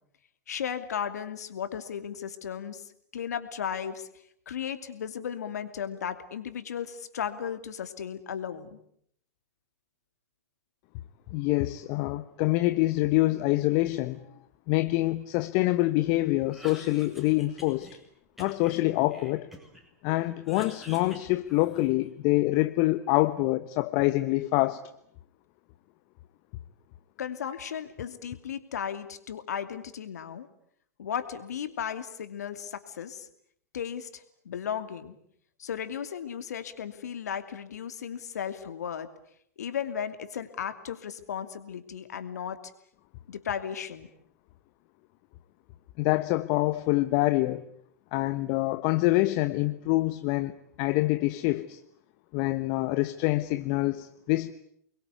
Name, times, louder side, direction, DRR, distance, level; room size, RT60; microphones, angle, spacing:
voice 1, 0.5-4.1 4.5-8.8 27.2-30.5 31.0-33.3 33.7-35.2 35.6-39.1 39.6-42.6 43.3-44.1, left 8 dB, 75° left, 2.7 m, -35 dB
voice 2, 11.3-14.2 14.7-17.9 18.4-19.5 20.0-24.8 46.0-47.6 48.1-51.8 52.3-54.5, left 19 dB, 50° left, 1.1 m, -26 dB
Cough, 16.4-18.0 18.4-19.9 20.2-22.1, equal, ahead, 7.8 m, -48 dB
29.5 x 22.5 x 8.3 m
hypercardioid pair, 100°, 9 cm